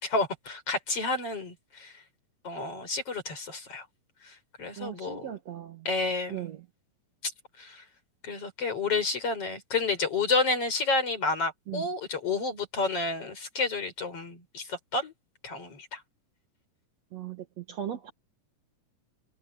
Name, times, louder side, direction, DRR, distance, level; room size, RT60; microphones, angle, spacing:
voice 1, 0.0-1.9 2.4-3.9 4.2-5.3 5.9-6.5 7.2-7.3 7.6-7.8 8.2-15.1 15.4-16.0, left 3 dB, 40° left, 6.1 m, -30 dB
voice 2, 4.8-5.9 6.3-6.6 11.7-11.8 17.1-18.1, right 11 dB, 60° right, 2.2 m, -38 dB
omnidirectional pair, 3.9 m